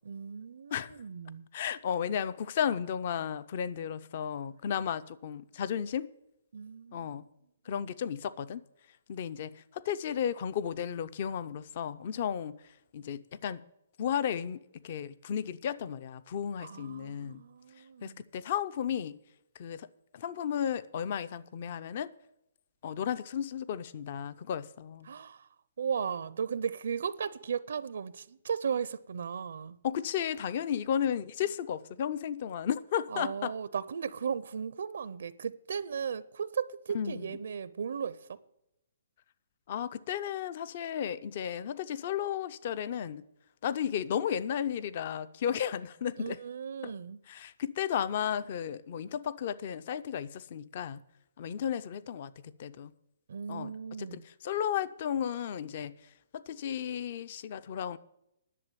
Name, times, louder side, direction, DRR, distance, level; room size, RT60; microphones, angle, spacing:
voice 1, 0.0-1.5 6.5-7.2 7.7-7.8 16.6-18.2 25.0-25.4 25.8-29.8 33.1-38.4 46.2-47.2 53.3-54.2, right 7 dB, 70° right, 0.5 m, -36 dB
voice 2, 1.5-6.1 6.9-7.3 7.7-8.6 9.1-12.6 12.9-13.6 14.0-17.4 18.0-19.2 19.6-19.9 20.1-22.1 22.8-25.1 29.8-33.5 36.9-37.3 39.7-43.3 43.6-46.4 46.8-46.9 47.3-51.0 51.4-52.3 52.6-52.9 53.5-53.7 54.0-55.9 56.3-58.0, left 9 dB, 40° left, 0.5 m, -34 dB
11.0 x 6.8 x 8.9 m
hypercardioid pair, 170°, 0 cm